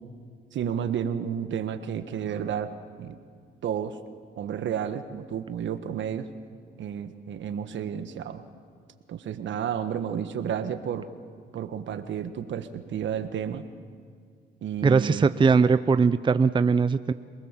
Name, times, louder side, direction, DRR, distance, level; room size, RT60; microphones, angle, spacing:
voice 1, 0.5-2.7 3.0-3.2 3.6-4.0 4.4-6.3 6.8-8.4 9.1-11.1 11.5-13.7 14.6-15.3, right 8 dB, 70° right, 10 dB, 1.4 m, -31 dB
voice 2, 14.8-17.1, right 5 dB, 25° right, 12 dB, 0.5 m, -20 dB
27.5 x 19.5 x 7.4 m, 2.1 s
cardioid pair, 90°, 20 cm